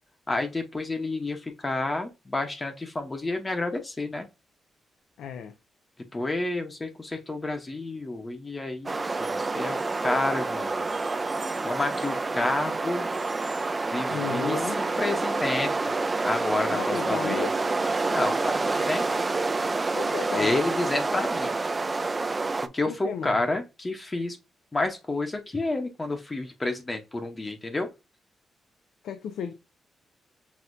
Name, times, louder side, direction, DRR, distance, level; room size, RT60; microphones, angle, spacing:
voice 1, 0.3-4.3 6.1-10.9 11.6-13.1 13.9-16.0 16.2-17.5 18.1-19.0 20.4-21.5 22.7-24.4 24.7-27.9, left 2 dB, 20° left, 0.8 m, -30 dB
voice 2, 5.2-5.5 14.1-14.8 16.7-17.6 19.9-20.6 22.8-23.4 29.0-29.5, left 7 dB, 90° left, 0.5 m, -34 dB
sound 1, 8.9-22.7, right 3 dB, 25° right, 0.4 m, -28 dB
6.2 x 2.7 x 2.5 m
cardioid pair, 120°, 0 cm